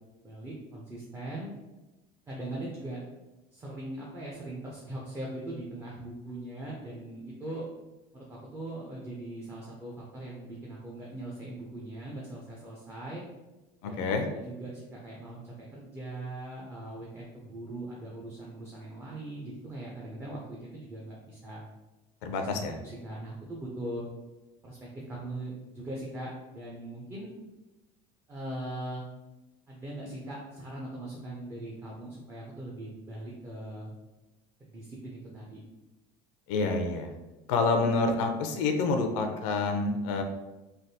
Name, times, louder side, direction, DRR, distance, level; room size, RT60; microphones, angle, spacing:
voice 1, 0.2-1.5 2.3-3.0 3.5-7.7 8.1-13.2 13.8-21.6 22.2-24.0 24.6-27.3 28.3-29.0 29.7-33.9 34.6-35.6, right 1 dB, 15° right, -4 dB, 0.4 m, -40 dB
voice 2, 13.8-14.3 22.2-22.8 36.5-37.1 37.5-40.2, left 3 dB, 80° left, 5 dB, 0.4 m, -28 dB
3.3 x 2.3 x 2.6 m, 1.0 s
cardioid pair, 170°, 15 cm